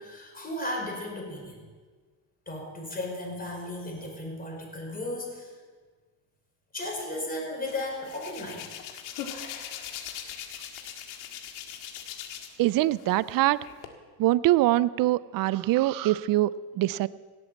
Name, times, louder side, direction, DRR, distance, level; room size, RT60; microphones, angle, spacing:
voice 1, 0.0-1.7 2.5-5.5 6.7-8.7, left 1 dB, 20° left, -1 dB, 5.6 m, -35 dB
Hands, 7.6-12.6 13.0-13.9, left 9 dB, 75° left, 1.9 m, -40 dB
voice 2, 12.6-13.6 14.2-17.1, right 16 dB, 45° right, 18 dB, 0.5 m, -23 dB
17.5 x 8.0 x 7.3 m, 1.5 s
supercardioid pair, 100°, 48 cm